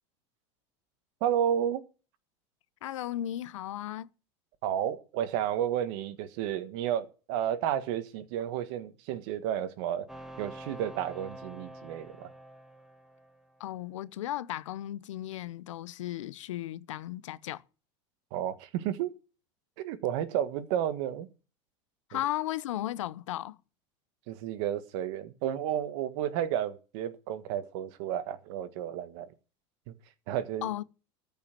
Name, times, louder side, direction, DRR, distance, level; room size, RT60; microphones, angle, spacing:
voice 1, 1.2-1.8 4.6-10.1 10.4-12.3 18.3-19.1 19.8-21.3 22.1-22.2 24.3-29.3 29.9-30.0 30.3-30.7, right 10 dB, 65° right, 1.6 m, -32 dB
voice 2, 2.8-4.1 13.6-17.6 22.1-23.6 30.6-30.8, left 13 dB, 90° left, 0.7 m, -35 dB
sound 1, 10.1-13.8, right 1 dB, 5° right, 1.4 m, -47 dB
14.0 x 5.7 x 7.5 m
supercardioid pair, 105°, 16 cm